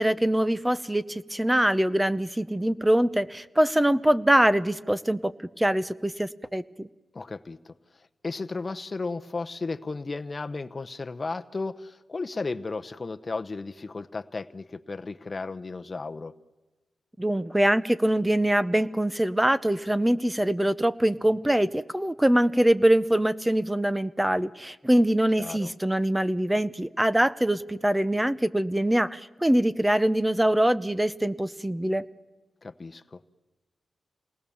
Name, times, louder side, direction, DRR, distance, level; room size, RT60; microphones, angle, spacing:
voice 1, 0.0-5.3 5.6-6.9 17.2-32.0, right 1 dB, 10° right, 15 dB, 0.8 m, -23 dB
voice 2, 7.1-16.3 25.4-25.7 32.6-33.3, left 3 dB, 35° left, 10 dB, 0.9 m, -34 dB
27.5 x 19.5 x 7.1 m, 1.2 s
wide cardioid pair, 100°, 0 cm